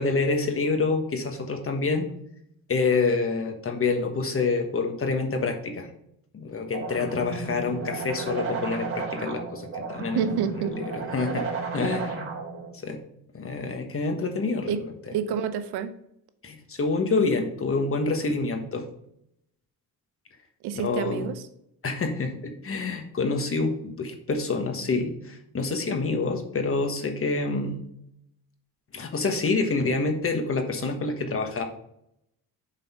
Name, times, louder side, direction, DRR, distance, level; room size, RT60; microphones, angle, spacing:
voice 1, 0.0-2.1 2.7-5.9 6.3-10.3 10.6-12.4 12.8-13.0 13.3-15.1 16.4-18.9 20.7-21.2 21.8-27.8 28.9-31.6, left 3 dB, 35° left, 5 dB, 1.3 m, -27 dB
sound 1, 6.7-12.7, right 4 dB, 30° right, 3.1 m, -33 dB
voice 2, 10.1-10.7 14.6-14.8 15.1-15.9 20.6-21.5, right 8 dB, 85° right, 10 dB, 0.8 m, -28 dB
7.5 x 4.1 x 5.5 m, 0.75 s
cardioid pair, 100°, 38 cm